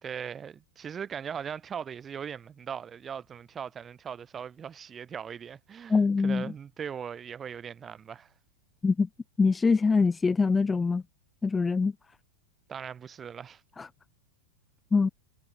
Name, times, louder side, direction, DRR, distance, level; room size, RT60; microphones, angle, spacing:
voice 1, 0.0-8.3 12.7-13.6, right 7 dB, 25° right, 3.8 m, -39 dB
voice 2, 5.9-6.5 8.8-9.1 9.4-11.0 11.4-11.9 13.8-13.9 14.9-15.1, left 4 dB, 15° left, 0.4 m, -24 dB
figure-of-eight pair, 95°, 0 cm